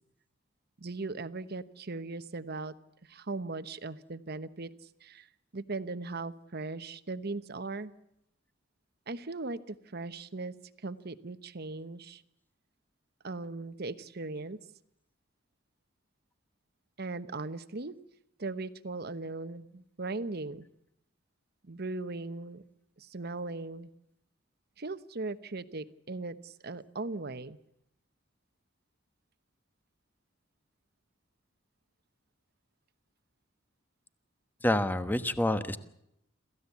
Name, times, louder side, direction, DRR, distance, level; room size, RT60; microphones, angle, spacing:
voice 1, 0.8-2.7 3.1-4.7 5.0-5.3 5.5-7.9 9.1-10.6 10.8-12.2 13.2-14.6 17.0-17.9 18.4-20.6 21.6-22.6 23.0-23.9 24.8-27.6, right 3 dB, 55° right, 13 dB, 1.0 m, -38 dB
voice 2, 34.6-35.8, left 1 dB, 10° left, 11 dB, 1.2 m, -27 dB
27.0 x 15.5 x 8.3 m, 0.79 s
head